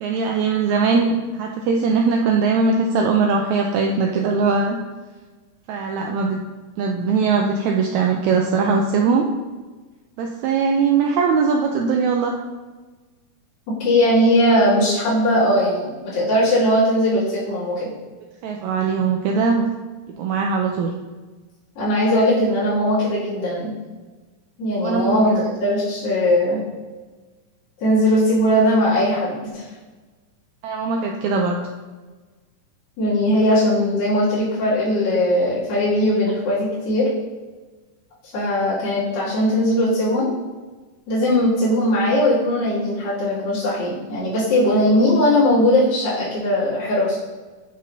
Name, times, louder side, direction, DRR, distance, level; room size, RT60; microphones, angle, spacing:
voice 1, 0.0-4.8 5.7-6.4 6.8-9.3 10.2-12.3 18.4-19.6 20.2-20.9 24.8-25.4 30.6-31.6, right 5 dB, 90° right, 2 dB, 1.6 m, -20 dB
voice 2, 13.8-17.9 21.8-23.7 24.6-26.6 27.8-29.6 33.0-37.1 38.3-40.3 41.1-47.2, left 1 dB, 85° left, -11 dB, 4.2 m, -19 dB
11.0 x 6.4 x 2.7 m, 1.3 s
omnidirectional pair, 3.9 m